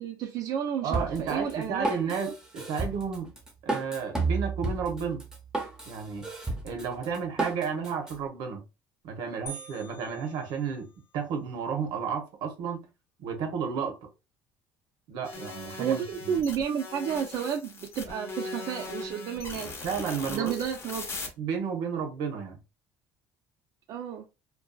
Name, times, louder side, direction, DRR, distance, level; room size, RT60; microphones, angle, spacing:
voice 1, 0.0-2.3 15.8-19.9 20.3-21.2 23.9-24.3, right 8 dB, 55° right, 0.4 m, -32 dB
voice 2, 0.8-3.3 3.6-5.2 5.9-6.3 6.6-8.6 9.0-10.9 11.1-12.9 13.2-14.0 15.1-16.4 19.8-20.5 21.4-22.6, right 6 dB, 75° right, 0.8 m, -32 dB
Drum kit, 0.9-8.1, right 3 dB, 10° right, 0.7 m, -32 dB
sound 1, 9.5-11.2, right 3 dB, 90° left, 0.8 m, -46 dB
sound 2, 15.2-21.3, left 3 dB, 35° left, 0.7 m, -40 dB
2.6 x 2.2 x 2.2 m
cardioid pair, 105°, 7 cm